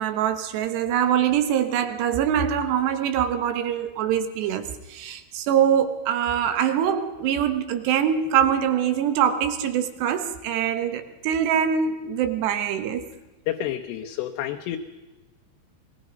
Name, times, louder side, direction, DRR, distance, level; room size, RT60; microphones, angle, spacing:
voice 1, 0.0-13.1, right 9 dB, 85° right, 9 dB, 3.5 m, -24 dB
voice 2, 13.5-14.8, left 12 dB, 85° left, 3 dB, 3.1 m, -29 dB
23.5 x 22.0 x 5.3 m, 1.1 s
omnidirectional pair, 4.8 m